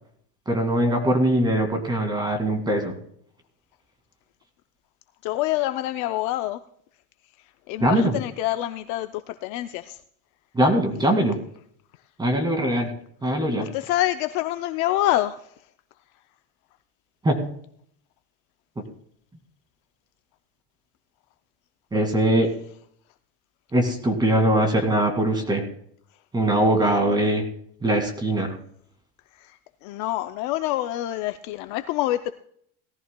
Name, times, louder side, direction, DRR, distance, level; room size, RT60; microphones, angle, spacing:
voice 1, 0.5-2.9 7.8-8.2 10.5-11.4 12.2-12.9 13.2-13.7 17.2-17.4 21.9-22.5 23.7-25.6 26.3-27.4 27.8-28.5, right 1 dB, 10° right, 5 dB, 2.1 m, -21 dB
voice 2, 5.2-6.6 7.7-10.0 13.6-15.4 29.8-32.3, left 15 dB, 45° left, 10 dB, 0.5 m, -26 dB
18.0 x 14.0 x 2.2 m, 0.64 s
cardioid pair, 165°, 43 cm